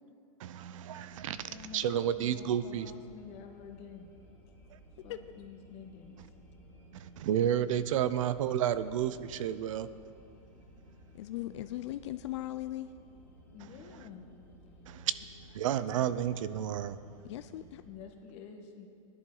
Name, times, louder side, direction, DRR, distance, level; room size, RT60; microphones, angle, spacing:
voice 1, 0.4-2.9 6.9-9.9 14.9-15.1 15.5-17.0, right 10 dB, 65° right, 14 dB, 0.6 m, -31 dB
sound 1, 1.1-17.9, equal, 10° left, 2.3 m, -56 dB
voice 2, 1.3-4.1 5.0-6.2 11.4-11.6 13.5-14.3 17.9-18.9, left 6 dB, 35° left, 3 dB, 1.4 m, -49 dB
voice 3, 11.1-12.9 17.2-17.8, left 14 dB, 55° left, 11 dB, 0.4 m, -38 dB
16.5 x 11.0 x 3.9 m, 2.4 s
hypercardioid pair, 145°, 18 cm